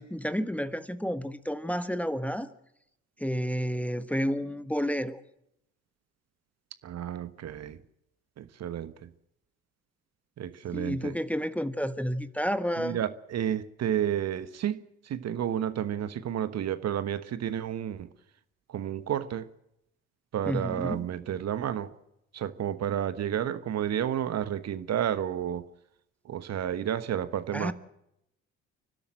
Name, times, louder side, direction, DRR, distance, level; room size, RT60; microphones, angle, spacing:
voice 1, 0.0-2.5 3.2-5.2 10.7-13.0 20.4-21.1 27.5-27.7, equal, 5° left, 13 dB, 1.3 m, -30 dB
voice 2, 6.8-7.8 8.4-9.1 10.4-11.1 12.8-14.8 15.0-18.1 18.7-19.5 20.3-21.9 22.3-25.6 26.2-27.7, right 10 dB, 45° right, 13 dB, 1.3 m, -31 dB
29.5 x 12.5 x 7.6 m, 0.80 s
hypercardioid pair, 55°, 35 cm